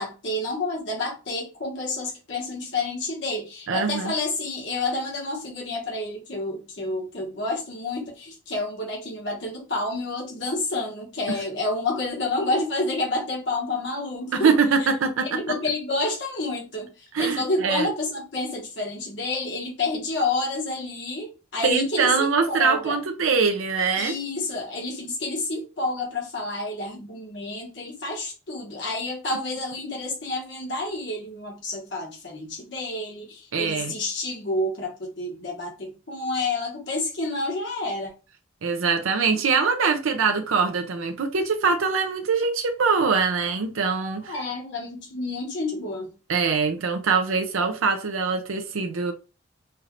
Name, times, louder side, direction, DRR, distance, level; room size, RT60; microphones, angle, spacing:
voice 1, 0.0-14.5 15.3-16.9 17.2-23.0 24.0-38.1 44.2-46.1, left 2 dB, 60° left, 1.4 m, -29 dB
voice 2, 3.7-4.1 11.3-11.4 14.3-15.5 17.1-17.9 21.6-24.2 33.5-33.9 38.6-44.4 46.3-49.1, right 5 dB, 85° right, 0.6 m, -23 dB
4.5 x 2.5 x 3.1 m
head